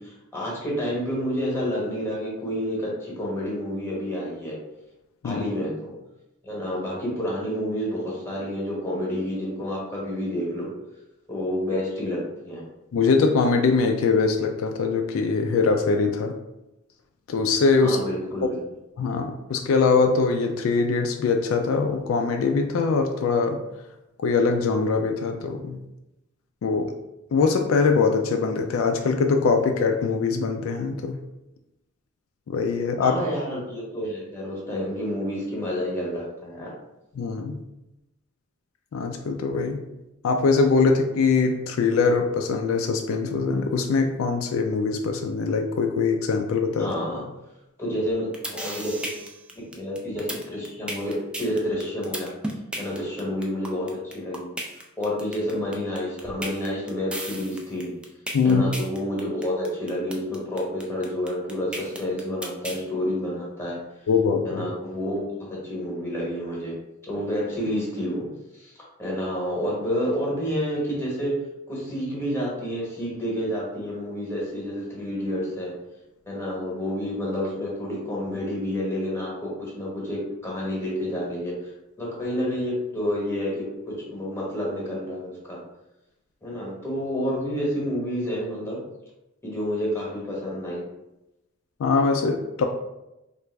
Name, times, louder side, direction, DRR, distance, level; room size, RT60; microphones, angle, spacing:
voice 1, 0.0-4.5 5.2-5.9 6.4-10.7 11.3-12.6 17.8-18.6 33.0-36.7 46.8-47.2 47.8-49.1 49.5-52.3 52.8-54.5 55.0-57.9 58.4-63.8 64.4-66.7 67.1-68.3 68.6-68.7 69.0-71.3 71.7-75.7 76.3-81.5 82.0-85.6 86.4-88.8 89.4-90.8, equal, 10° left, -5 dB, 1.0 m, -29 dB
voice 2, 12.9-16.3 17.3-18.0 19.0-23.6 24.2-25.8 26.6-26.9 27.3-31.2 32.5-33.2 37.2-37.6 38.9-39.8 40.2-46.9 58.3-58.6 64.1-64.7 91.8-92.7, left 4 dB, 70° left, 4 dB, 0.3 m, -22 dB
sound 1, 48.1-62.8, right 1 dB, 5° right, 0.3 m, -34 dB
3.2 x 2.4 x 3.3 m, 0.94 s
head